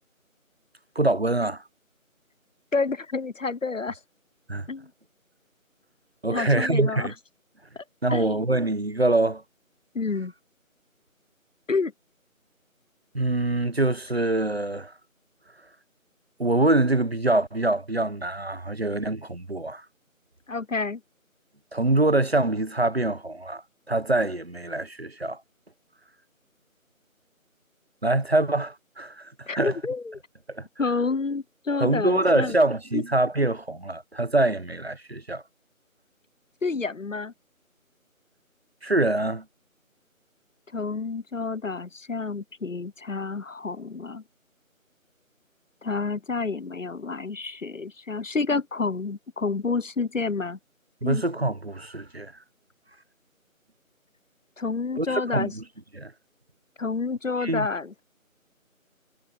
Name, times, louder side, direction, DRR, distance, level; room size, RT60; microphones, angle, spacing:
voice 1, 0.9-1.6 4.5-4.7 6.2-7.1 8.0-9.4 13.1-14.9 16.4-19.8 21.7-25.4 28.0-29.8 30.5-30.7 31.8-35.4 38.8-39.4 51.0-52.3 55.0-55.6 55.9-56.1 57.4-57.7, right 2 dB, 45° right, 1.4 m, -24 dB
voice 2, 2.7-4.0 4.7-4.9 6.3-7.1 7.8-7.9 8.1-8.4 9.9-10.3 11.7-11.9 20.5-21.0 29.5-30.2 30.8-32.6 32.9-33.0 36.6-37.3 40.7-44.2 45.8-50.6 51.0-51.2 54.6-55.5 56.8-57.9, left 4 dB, 65° left, 0.8 m, -29 dB
figure-of-eight pair, 170°, 42 cm